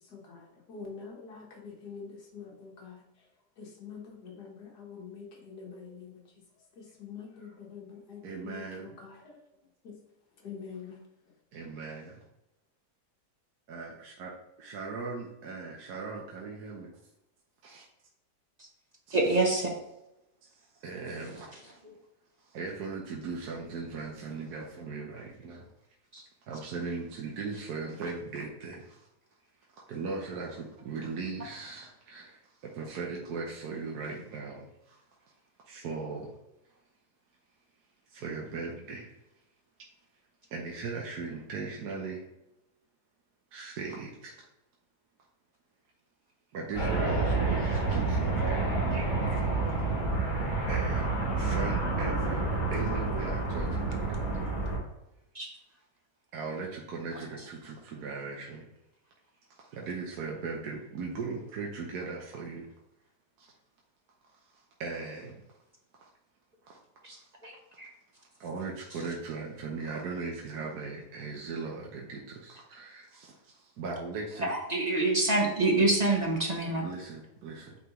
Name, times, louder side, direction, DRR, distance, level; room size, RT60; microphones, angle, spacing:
voice 1, 0.1-3.0 3.6-6.2 6.7-9.4 9.8-9.9 10.4-11.0, left 6 dB, 70° left, 0 dB, 1.8 m, -45 dB
voice 2, 8.2-9.0 11.5-12.2 13.7-14.3 14.6-16.9 17.6-17.8 19.1-19.4 20.4-20.5 20.8-21.8 22.4-25.6 26.5-29.1 29.9-35.0 35.7-36.3 38.1-39.1 40.5-42.2 43.5-44.3 46.5-48.5 49.0-49.1 49.3-49.4 50.7-52.4 52.7-54.2 56.3-58.7 59.6-62.7 63.4-63.5 64.8-65.4 66.0-66.1 66.6-66.8 67.1-67.2 68.4-74.5 76.8-77.8, right 4 dB, 70° right, -1 dB, 1.4 m, -38 dB
voice 3, 19.1-19.7 26.1-26.2 55.3-55.5 67.0-67.2 67.4-67.5 67.8-67.9 74.4-76.8, right 2 dB, 35° right, 0 dB, 0.7 m, -26 dB
sound 1, 46.7-54.8, right 3 dB, 35° left, 2.1 m, -29 dB
8.4 x 3.9 x 3.0 m, 0.90 s
omnidirectional pair, 1.8 m